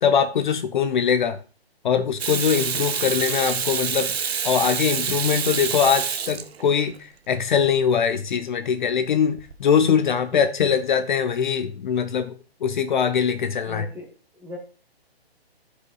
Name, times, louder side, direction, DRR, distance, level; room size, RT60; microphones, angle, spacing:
voice 1, 0.0-1.4 1.8-4.1 4.4-12.3 12.6-13.8, left 7 dB, 50° left, 9 dB, 0.6 m, -22 dB
Water tap faucet / Sink (filling or washing), 2.2-7.0 9.4-9.5, right 7 dB, 70° right, 0.8 m, -27 dB
voice 2, 13.6-14.1 14.3-14.6, left 2 dB, 5° right, -1 dB, 1.0 m, -37 dB
12.0 x 5.0 x 2.3 m, 0.35 s
hypercardioid pair, 145°, 32 cm